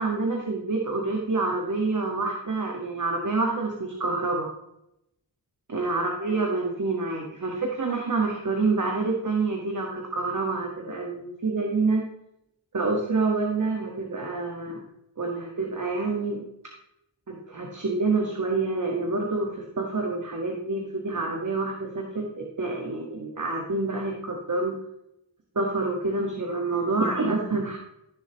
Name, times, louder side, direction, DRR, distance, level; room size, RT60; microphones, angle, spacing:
voice 1, 0.0-4.5 5.7-12.0 12.7-14.8 15.2-16.4 17.3-24.8 25.5-27.8, right 3 dB, 40° right, 0 dB, 1.7 m, -27 dB
14.0 x 6.9 x 3.0 m, 0.81 s
wide cardioid pair, 80°, 46 cm